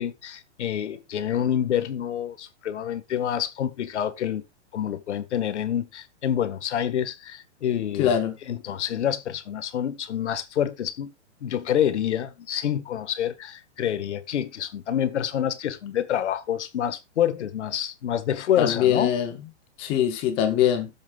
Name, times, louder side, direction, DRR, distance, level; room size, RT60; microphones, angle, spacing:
voice 1, 0.0-4.4 4.7-8.1 8.5-11.1 11.4-19.1, left 10 dB, 75° left, 1.6 m, -27 dB
voice 2, 8.0-8.4 18.6-19.3 19.8-20.9, left 9 dB, 15° left, 0.7 m, -22 dB
14.5 x 7.6 x 2.4 m
hypercardioid pair, 170°, 35 cm